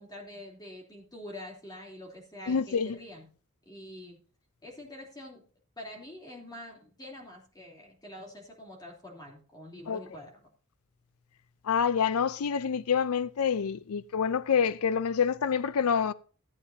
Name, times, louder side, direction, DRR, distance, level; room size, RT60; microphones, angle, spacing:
voice 1, 0.0-3.3 3.6-4.2 4.6-5.4 5.8-10.5, left 1 dB, 20° left, 3.1 m, -46 dB
voice 2, 2.5-3.0 9.9-10.0 11.7-16.1, left 7 dB, 75° left, 0.5 m, -27 dB
15.5 x 9.1 x 2.7 m
head